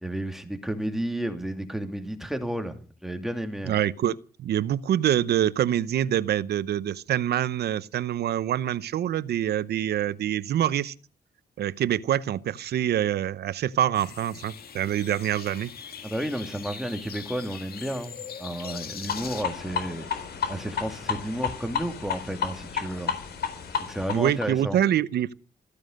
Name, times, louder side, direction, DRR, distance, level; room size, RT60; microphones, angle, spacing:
voice 1, 0.0-2.7 3.0-3.7 16.0-20.1 20.5-23.1 23.9-24.8, right 1 dB, ahead, 2.6 m, -32 dB
voice 2, 3.6-10.9 11.6-15.7 24.1-25.3, right 11 dB, 90° right, 0.8 m, -25 dB
sound 1, 13.9-19.4, left 7 dB, 70° left, 2.1 m, -41 dB
sound 2, 19.1-24.4, left 7 dB, 85° left, 4.0 m, -32 dB
15.0 x 14.5 x 6.5 m
cardioid pair, 115°, 16 cm